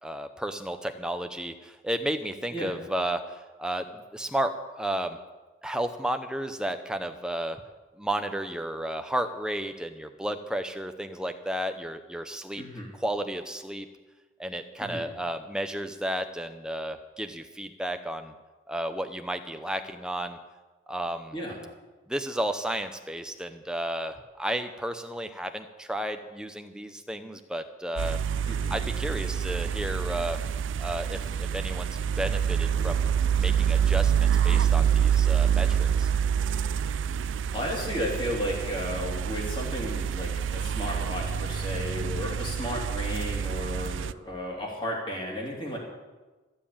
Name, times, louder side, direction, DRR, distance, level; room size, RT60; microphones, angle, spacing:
voice 1, 0.0-5.2 5.6-7.6 8.0-12.6 13.0-13.9 14.4-18.3 18.7-20.4 20.9-21.4 22.1-28.2 28.7-30.4 30.8-36.1, right 1 dB, 5° right, 7 dB, 0.7 m, -33 dB
voice 2, 12.6-12.9 14.8-15.1 21.3-21.6 28.5-28.8 37.5-45.8, equal, 25° left, -2 dB, 3.1 m, -33 dB
sound 1, 28.0-44.1, right 8 dB, 75° right, 0.4 m, -27 dB
14.0 x 7.6 x 8.7 m, 1.2 s
head